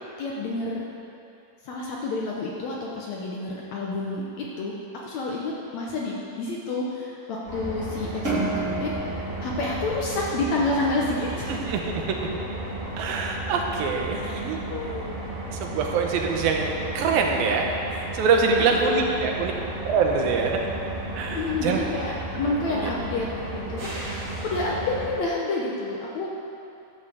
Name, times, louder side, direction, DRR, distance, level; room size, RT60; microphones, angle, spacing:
voice 1, 0.2-0.8 1.6-4.7 5.0-8.9 9.4-11.6 14.1-15.2 18.5-19.1 21.3-24.1 24.4-26.3, left 2 dB, 70° left, -3 dB, 1.8 m, -29 dB
sound 1, 7.5-25.1, right 2 dB, 45° right, 3.0 m, -34 dB
sound 2, 8.2-10.8, right 3 dB, 65° right, 0.7 m, -30 dB
voice 2, 11.5-12.2 13.0-14.6 15.6-17.7 17.9-19.5 19.8-20.6 21.1-21.8 22.6-22.9, right 5 dB, 85° right, 1 dB, 2.8 m, -24 dB
12.0 x 5.6 x 6.9 m, 2.7 s
omnidirectional pair, 4.1 m